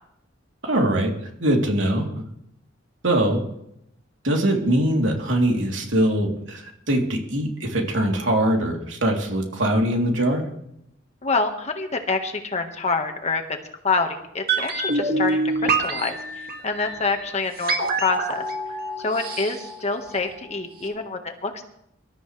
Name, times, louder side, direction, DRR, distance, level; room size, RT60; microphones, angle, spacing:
voice 1, 0.6-1.1 1.4-2.2 3.0-3.4 4.2-10.5, right 1 dB, 75° right, 0 dB, 3.3 m, -22 dB
voice 2, 11.2-13.4 13.8-18.4 19.0-21.6, left 4 dB, 35° left, 4 dB, 1.5 m, -26 dB
sound 1, 14.5-20.5 20.8-20.9, right 3 dB, 50° right, 2.1 m, -26 dB
25.0 x 13.0 x 3.3 m, 0.77 s
head